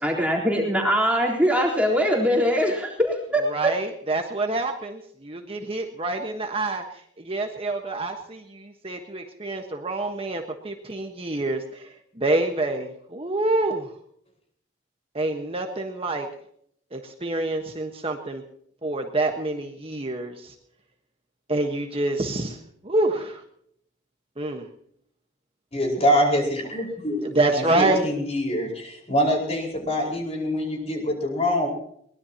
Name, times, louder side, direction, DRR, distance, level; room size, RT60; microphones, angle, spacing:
voice 1, 0.0-3.7, equal, 5° right, -2 dB, 4.0 m, -22 dB
voice 2, 3.5-13.9 15.1-16.3 16.9-18.4 18.8-20.5 21.5-22.6 22.8-23.4 24.4-24.7 27.2-28.1, right 2 dB, 30° right, 3 dB, 1.4 m, -27 dB
voice 3, 25.7-27.2 27.5-31.7, equal, 35° left, 1 dB, 5.1 m, -24 dB
22.5 x 20.0 x 3.0 m, 0.68 s
head